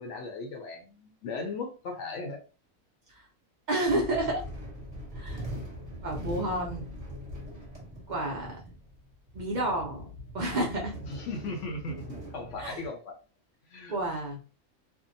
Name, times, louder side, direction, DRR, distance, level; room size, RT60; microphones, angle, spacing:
voice 1, 0.0-2.4 11.1-13.2 13.7-14.0, left 3 dB, 65° left, 0.8 m, -37 dB
voice 2, 3.7-4.4 5.1-5.4 6.0-6.9 8.1-8.6 9.3-10.1 10.3-11.0 12.6-12.8 13.9-14.4, right 1 dB, 80° right, 0.4 m, -30 dB
sound 1, 3.8-12.9, equal, 30° right, 0.9 m, -41 dB
2.6 x 2.1 x 2.6 m
omnidirectional pair, 1.5 m